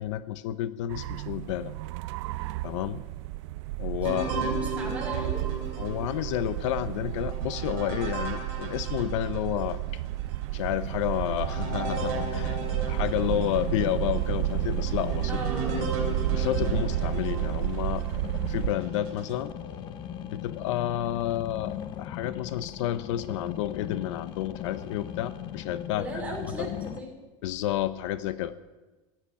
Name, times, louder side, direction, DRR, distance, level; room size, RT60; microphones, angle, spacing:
voice 1, 0.0-1.7 2.6-3.0 3.8-4.4 5.8-10.0 10.5-12.6 12.9-15.4 15.8-15.9 16.3-18.1 18.5-19.5 20.3-26.7 27.4-28.5, left 12 dB, 65° left, 15 dB, 0.6 m, -30 dB
sound 1, 0.9-18.7, right 17 dB, 60° right, 0.4 m, -32 dB
sound 2, 4.0-9.8 10.3-10.4 11.0-18.2 18.8-19.4, right 3 dB, 45° right, 3.3 m, -37 dB
voice 2, 4.1-5.4 15.3-15.8 26.0-27.1, right 2 dB, 10° right, -1 dB, 3.1 m, -37 dB
sound 3, 11.8-27.0, left 10 dB, 25° left, 0.6 m, -39 dB
15.5 x 8.9 x 10.0 m, 1.2 s
supercardioid pair, 180°, 17 cm